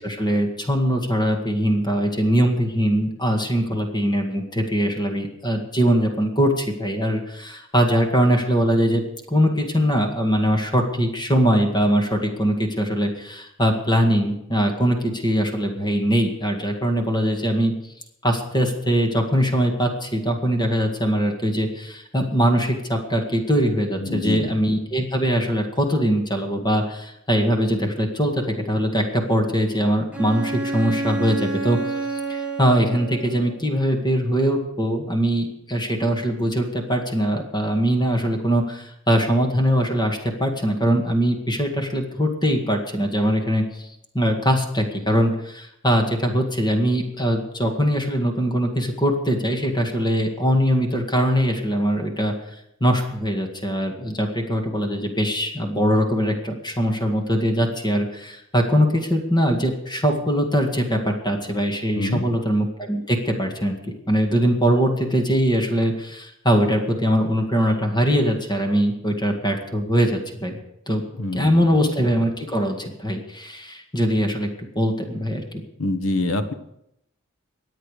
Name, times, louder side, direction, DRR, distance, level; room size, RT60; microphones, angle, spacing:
voice 1, 0.0-9.0 9.3-17.9 18.2-31.8 32.1-43.9 44.1-52.3 52.8-70.6 70.9-71.0 71.3-74.5 74.8-75.6, equal, 20° left, 2 dB, 2.0 m, -22 dB
voice 2, 24.0-24.5 61.9-62.3 71.2-71.7 75.8-76.5, left 2 dB, 80° left, 10 dB, 1.3 m, -25 dB
Bowed string instrument, 30.1-33.6, right 3 dB, 5° right, 2.0 m, -29 dB
23.5 x 9.2 x 5.0 m, 0.81 s
head